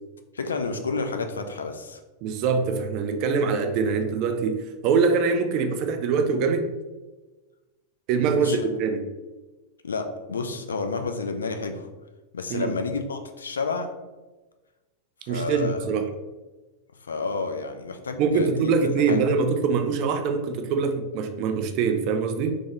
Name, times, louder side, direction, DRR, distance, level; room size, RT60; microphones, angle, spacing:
voice 1, 0.3-2.0 8.2-8.7 9.8-11.9 12.3-13.9 15.3-15.9 17.0-18.7 19.1-19.2, left 4 dB, 70° left, 6 dB, 0.3 m, -30 dB
voice 2, 2.2-6.7 8.1-9.1 12.5-12.7 15.3-16.1 18.2-22.6, right 5 dB, 40° right, 7 dB, 0.3 m, -24 dB
3.3 x 2.6 x 3.3 m, 1.2 s
figure-of-eight pair, 90°, 0 cm